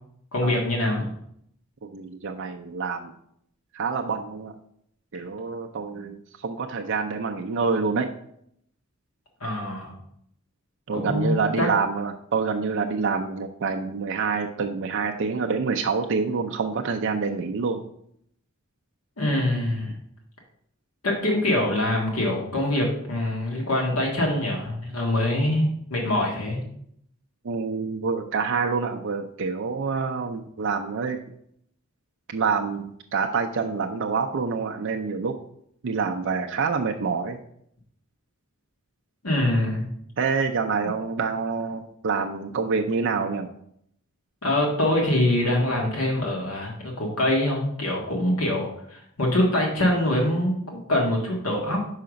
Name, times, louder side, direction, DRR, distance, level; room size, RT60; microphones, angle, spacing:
voice 1, 0.3-1.0 9.4-9.9 10.9-11.7 19.2-19.9 21.0-26.6 39.2-39.9 44.4-51.9, left 1 dB, 80° left, -1 dB, 1.7 m, -24 dB
voice 2, 1.9-3.1 3.7-4.5 5.1-8.1 10.9-17.8 27.4-31.2 32.3-35.4 35.8-37.4 39.3-39.5 40.2-43.5, right 5 dB, 60° right, 4 dB, 0.5 m, -27 dB
5.7 x 4.8 x 5.1 m, 0.70 s
head